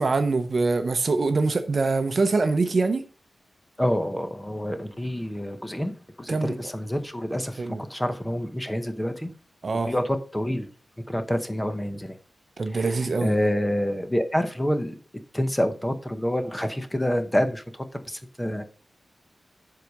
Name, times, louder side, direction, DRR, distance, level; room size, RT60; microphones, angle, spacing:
voice 1, 0.0-3.0 6.3-6.5 7.6-7.8 9.6-9.9 12.6-13.4, right 3 dB, 40° right, 0.8 m, -24 dB
voice 2, 3.8-7.6 7.9-9.3 9.9-10.7 11.1-12.2 12.7-14.9 15.3-18.6, equal, 10° left, 0.8 m, -27 dB
7.6 x 4.8 x 5.2 m
wide cardioid pair, 145°, 0 cm